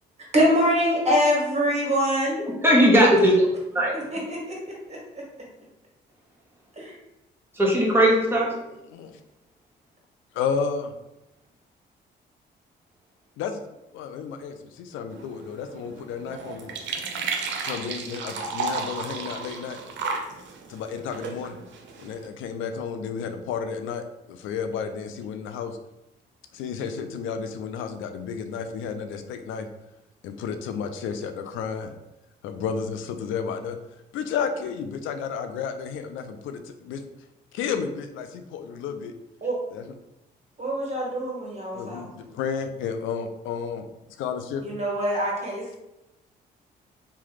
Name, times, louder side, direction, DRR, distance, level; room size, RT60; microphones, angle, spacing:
voice 1, 0.3-2.4 4.1-4.6 4.9-5.0 6.8-6.9 39.4-39.6 40.6-42.1 44.6-45.8, equal, 35° right, -3 dB, 1.4 m, -24 dB
voice 2, 2.6-3.5 3.7-3.9 7.5-8.6, equal, 10° right, -3 dB, 1.1 m, -18 dB
voice 3, 10.3-10.9 13.4-13.6 13.9-16.7 17.6-19.8 20.7-21.6 22.0-25.8 26.5-29.7 30.2-31.9 32.4-33.8 34.1-37.0 37.5-39.1 39.7-39.9 41.7-43.8 44.2-44.8, left 6 dB, 75° left, 7 dB, 0.4 m, -32 dB
sound 1, 15.1-22.3, right 4 dB, 70° right, 0.5 m, -34 dB
3.1 x 2.2 x 3.2 m, 0.90 s
supercardioid pair, 55°, 20 cm